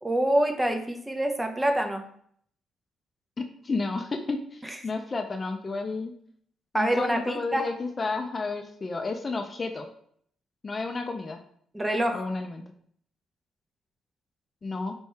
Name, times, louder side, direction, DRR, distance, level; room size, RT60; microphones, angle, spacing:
voice 1, 0.0-2.0 6.7-7.7 11.7-12.3, right 1 dB, 15° right, 5 dB, 0.6 m, -26 dB
voice 2, 3.4-6.1 6.7-9.9 10.6-11.4 12.1-12.6 14.6-14.9, left 3 dB, 30° left, 5 dB, 0.4 m, -31 dB
4.4 x 2.7 x 3.3 m, 0.63 s
cardioid pair, 90°, 0 cm